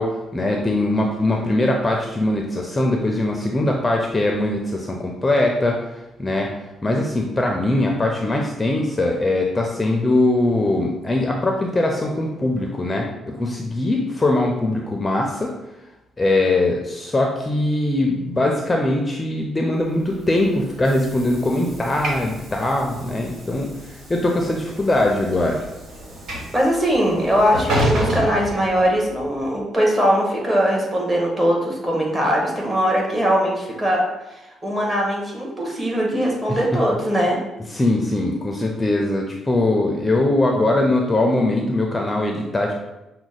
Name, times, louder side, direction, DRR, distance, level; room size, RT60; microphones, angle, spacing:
voice 1, 0.0-6.5 6.8-15.5 16.2-25.6 36.5-36.6 37.7-42.7, left 2 dB, 20° left, 1 dB, 0.6 m, -21 dB
Train / Sliding door, 20.0-29.3, equal, 75° right, 1.4 m, -30 dB
voice 2, 26.5-34.0 34.3-37.4, equal, 20° right, -2 dB, 1.5 m, -21 dB
5.8 x 2.2 x 4.1 m, 0.97 s
cardioid pair, 90°, 0 cm